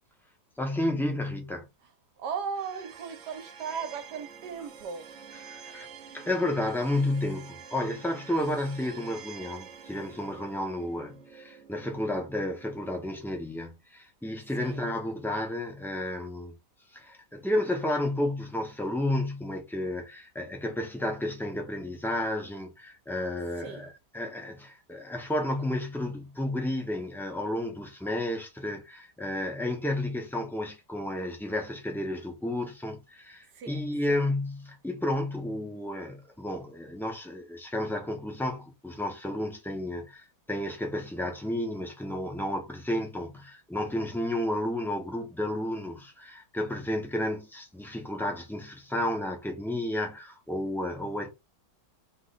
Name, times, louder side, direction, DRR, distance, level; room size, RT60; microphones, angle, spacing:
voice 1, 0.6-1.7 5.4-5.9 6.1-16.6 16.9-51.3, left 1 dB, ahead, 0.6 m, -32 dB
voice 2, 2.2-5.1 14.5-14.8 23.5-23.9 33.5-34.3, right 6 dB, 75° right, 1.5 m, -37 dB
sound 1, 2.5-13.6, right 7 dB, 60° right, 1.0 m, -48 dB
3.7 x 3.0 x 4.1 m
omnidirectional pair, 1.8 m